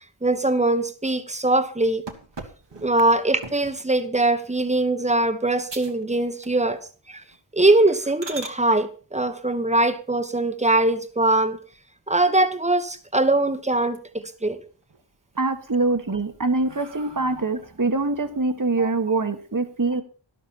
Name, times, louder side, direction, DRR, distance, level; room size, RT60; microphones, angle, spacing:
voice 1, 0.2-2.0 2.8-6.8 7.1-7.2 7.5-11.6 12.1-14.6 18.8-18.9, right 2 dB, 15° right, 1.3 m, -22 dB
sound 1, 2.1-3.9 4.4-4.7 5.2-5.3 5.7-6.0 6.3-6.9 7.2-7.4 7.9-8.6 10.6-11.3 11.7-11.8 12.2-12.3 12.6-13.4 13.8-14.4 14.8-15.4 15.9-17.6, right 3 dB, 60° right, 1.8 m, -42 dB
voice 2, 15.4-20.0, right 3 dB, 40° right, 1.6 m, -24 dB
12.5 x 11.5 x 4.3 m
wide cardioid pair, 60°, 47 cm